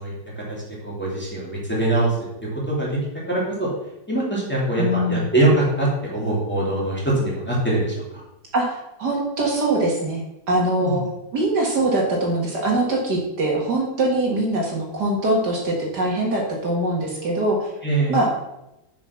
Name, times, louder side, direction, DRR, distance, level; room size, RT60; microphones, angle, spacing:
voice 1, 0.0-2.2 2.7-3.0 3.3-3.7 4.1-8.2 10.8-11.0 17.8-18.1, right 2 dB, 5° left, -6 dB, 2.8 m, -23 dB
voice 2, 4.8-5.3 8.5-11.0 11.3-17.7 18.1-18.3, right 1 dB, 60° right, -1 dB, 2.3 m, -22 dB
7.2 x 6.1 x 5.9 m, 0.90 s
omnidirectional pair, 2.0 m